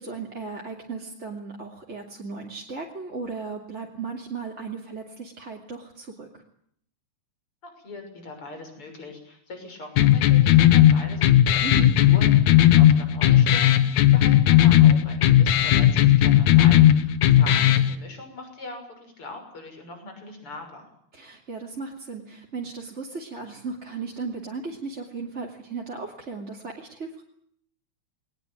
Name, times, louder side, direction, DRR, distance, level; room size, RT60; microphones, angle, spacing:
voice 1, 0.0-6.3 11.6-11.9 17.5-17.7 21.1-27.2, right 4 dB, 25° right, -1 dB, 3.1 m, -36 dB
voice 2, 7.6-20.9, left 2 dB, 45° left, 5 dB, 7.1 m, -41 dB
sound 1, 10.0-17.9, left 12 dB, 85° left, 2.7 m, -16 dB
21.5 x 20.5 x 9.1 m, 0.67 s
omnidirectional pair, 3.3 m